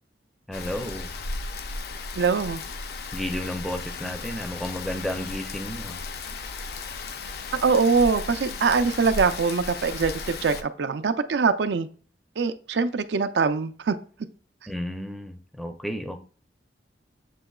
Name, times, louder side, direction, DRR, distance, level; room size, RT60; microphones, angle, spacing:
Rain, 0.5-10.6, left 3 dB, 60° left, 0.4 m, -35 dB
voice 1, 0.5-1.1 3.1-6.0 14.7-16.2, left 1 dB, ahead, 0.4 m, -32 dB
voice 2, 2.1-2.6 7.6-11.9 12.4-14.0, right 5 dB, 75° right, 0.4 m, -23 dB
7.5 x 2.9 x 2.3 m
head